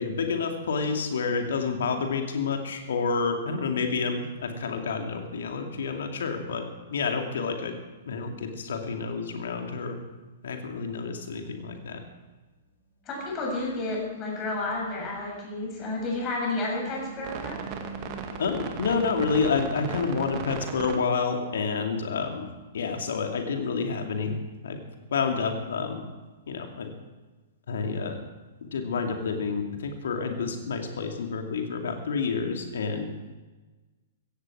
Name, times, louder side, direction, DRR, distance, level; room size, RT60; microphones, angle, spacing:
voice 1, 0.0-6.6 6.9-7.8 8.1-10.0 10.4-12.0 18.4-22.5 22.7-24.8 25.1-26.1 26.5-26.9 27.7-28.2 28.7-33.1, left 5 dB, 65° left, 4 dB, 2.4 m, -29 dB
voice 2, 13.0-17.6, left 2 dB, 30° left, -1 dB, 6.8 m, -31 dB
sound 1, 13.2-13.6 13.9-21.0, right 6 dB, 40° right, 1.9 m, -39 dB
16.0 x 15.5 x 4.8 m, 1.2 s
figure-of-eight pair, 110°, 0 cm